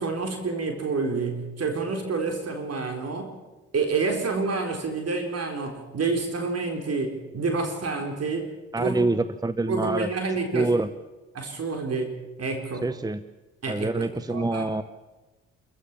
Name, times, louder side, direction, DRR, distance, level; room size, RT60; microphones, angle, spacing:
voice 1, 0.0-3.4 3.7-8.5 8.8-9.1 9.7-10.7 11.3-12.9 13.6-14.7, right 4 dB, 50° right, 4 dB, 4.1 m, -28 dB
voice 2, 8.7-10.1 10.5-10.9 12.8-13.2 13.7-14.8, right 2 dB, 10° right, 13 dB, 0.9 m, -26 dB
28.5 x 14.5 x 7.2 m, 1.2 s
hypercardioid pair, 55°, 33 cm